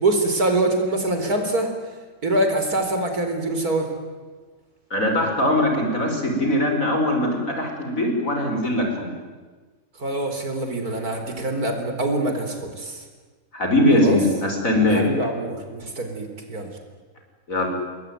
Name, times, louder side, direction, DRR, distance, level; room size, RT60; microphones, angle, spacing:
voice 1, 0.0-1.7 2.2-3.9 10.0-13.0 13.9-14.2 14.9-16.7, right 2 dB, 90° right, 5 dB, 4.6 m, -24 dB
voice 2, 4.9-9.1 13.5-15.0 17.5-17.7, left 1 dB, 65° left, 3 dB, 5.7 m, -21 dB
27.5 x 21.5 x 9.5 m, 1.4 s
omnidirectional pair, 1.5 m